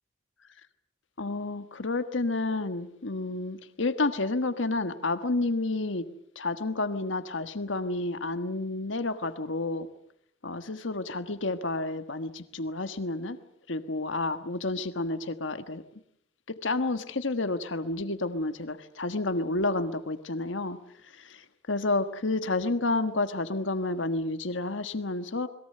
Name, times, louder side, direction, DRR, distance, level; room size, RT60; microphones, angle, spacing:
voice 1, 1.2-6.1 6.3-9.9 10.4-13.4 13.7-15.8 16.5-20.8 21.2-21.4 21.7-25.5, left 2 dB, 75° left, 10 dB, 1.4 m, -30 dB
30.0 x 21.5 x 6.7 m, 0.73 s
head